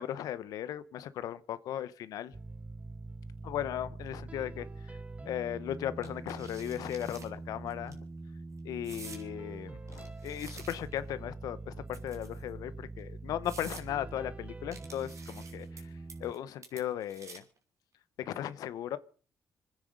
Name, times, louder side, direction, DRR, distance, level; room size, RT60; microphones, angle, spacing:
voice 1, 0.0-2.3 3.4-5.0 5.2-8.1 8.6-15.9 16.2-17.4 18.2-19.0, left 11 dB, 80° left, 0.8 m, -37 dB
sound 1, 2.3-16.3, right 3 dB, 20° right, 0.8 m, -44 dB
sound 2, 6.0-7.3 7.7-7.9 8.8-9.2 9.9-11.1 11.9-12.5 13.0-13.1 13.4-13.9 14.7-15.8 16.1-16.4 16.6-17.6, right 5 dB, 55° right, 3.6 m, -50 dB
26.5 x 9.8 x 5.2 m
supercardioid pair, 60°, 6 cm